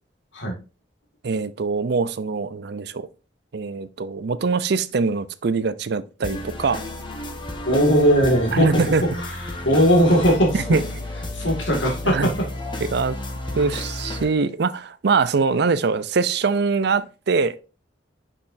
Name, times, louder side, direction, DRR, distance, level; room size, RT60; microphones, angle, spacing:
voice 1, 1.2-3.1 3.5-6.8 8.5-9.0 10.5-10.8 12.0-12.3 12.9-13.1 13.5-17.6, right 4 dB, 65° right, 0.5 m, -23 dB
sound 1, 6.2-14.2, left 1 dB, 25° left, 1.1 m, -32 dB
voice 2, 7.6-8.7 9.2-10.6 11.3-12.3, equal, 85° left, 2.1 m, -19 dB
6.4 x 5.8 x 2.6 m
head